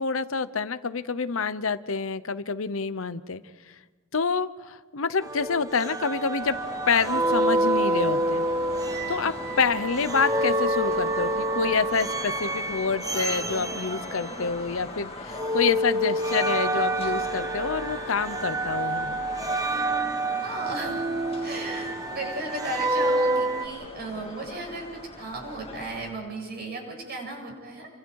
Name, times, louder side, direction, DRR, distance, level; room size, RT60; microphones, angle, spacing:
voice 1, 0.0-3.4 4.1-6.5 6.9-8.5 9.1-19.2, left 5 dB, 70° left, 13 dB, 0.8 m, -27 dB
sound 1, 5.2-15.0 15.3-23.7, right 1 dB, 15° right, 1.3 m, -28 dB
sound 2, 6.4-26.1, left 2 dB, 30° left, 2.0 m, -40 dB
voice 2, 20.4-24.9 25.2-27.9, right 2 dB, 50° right, 1 dB, 7.8 m, -35 dB
30.0 x 25.0 x 4.8 m, 1.3 s
head